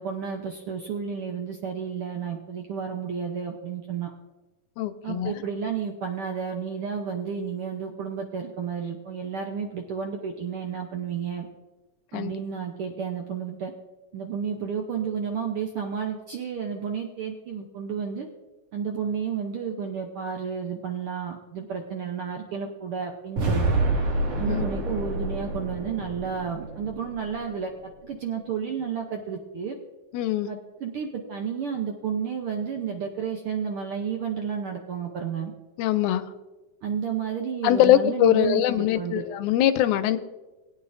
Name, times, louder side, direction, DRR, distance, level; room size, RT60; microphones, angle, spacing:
voice 1, 0.0-4.1 5.0-11.5 12.1-13.7 14.1-18.3 18.7-23.8 24.4-29.8 30.5-35.5 36.8-39.3, right 7 dB, 70° right, 2 dB, 1.3 m, -31 dB
voice 2, 4.8-5.3 12.1-12.3 24.5-24.6 30.1-30.5 35.8-36.3 37.6-40.2, left 12 dB, 90° left, 12 dB, 2.1 m, -22 dB
sound 1, 23.4-27.5, right 2 dB, 55° right, 3.1 m, -27 dB
20.0 x 9.2 x 2.6 m, 1.2 s
omnidirectional pair, 3.4 m